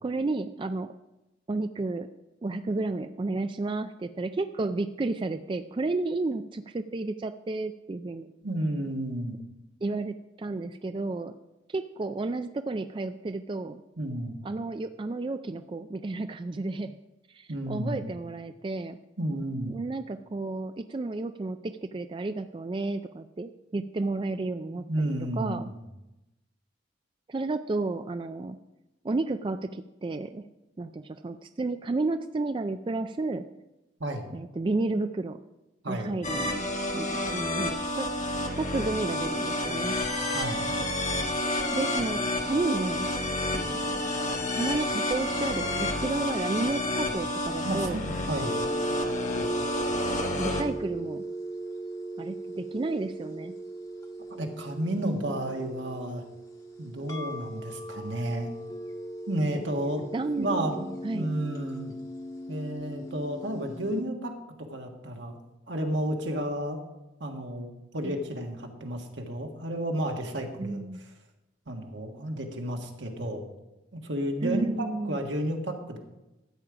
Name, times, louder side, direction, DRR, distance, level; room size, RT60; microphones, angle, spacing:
voice 1, 0.0-0.9 1.5-2.1 2.4-8.3 9.8-11.3 11.7-13.8 14.4-17.0 17.3-19.0 19.7-24.8 25.4-25.7 27.3-28.6 29.0-30.4 30.8-33.4 34.3-35.4 35.9-38.1 38.6-40.0 41.7-43.1 43.5-44.0 44.5-48.0 50.4-51.2 52.2-53.5 60.1-61.3 68.0-68.2 70.6-71.0 74.4-75.2, right 3 dB, 25° right, 9 dB, 0.3 m, -32 dB
voice 2, 8.4-9.4 14.0-14.4 17.5-18.0 19.2-19.8 24.7-25.8 34.0-34.3 35.8-36.1 40.3-40.7 47.6-48.6 54.3-56.2 56.8-58.5 59.3-60.0 60.4-61.9 62.5-64.3 64.7-65.4 65.7-66.8 67.2-70.8 71.7-73.4 73.9-76.0, right 1 dB, 80° right, 3 dB, 1.7 m, -32 dB
sound 1, 36.2-50.6, left 1 dB, 40° left, 1.2 m, -30 dB
sound 2, 48.4-64.0, right 1 dB, 20° left, 1.4 m, -37 dB
13.0 x 8.4 x 5.0 m, 0.98 s
head